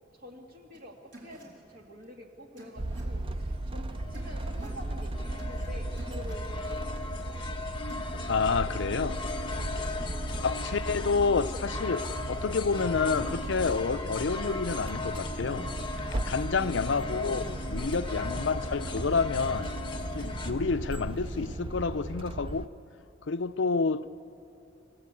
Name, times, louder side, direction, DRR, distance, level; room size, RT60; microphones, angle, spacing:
voice 1, 0.1-7.7 16.9-17.8, equal, 50° right, 2.3 m, -48 dB
sound 1, 0.7-0.8 1.1-1.4 2.6-3.0 4.1-4.8 5.4-5.7 6.0-6.3 7.9-8.1, equal, 65° right, 4.7 m, -48 dB
sound 2, 2.8-22.7, right 2 dB, 25° right, 0.4 m, -36 dB
sound 3, 3.5-20.5, left 4 dB, 25° left, 1.2 m, -38 dB
voice 2, 8.3-9.2 10.4-15.7 16.2-19.7 20.1-22.7 23.3-24.3, left 4 dB, 65° left, 0.5 m, -29 dB
27.0 x 17.5 x 8.4 m
head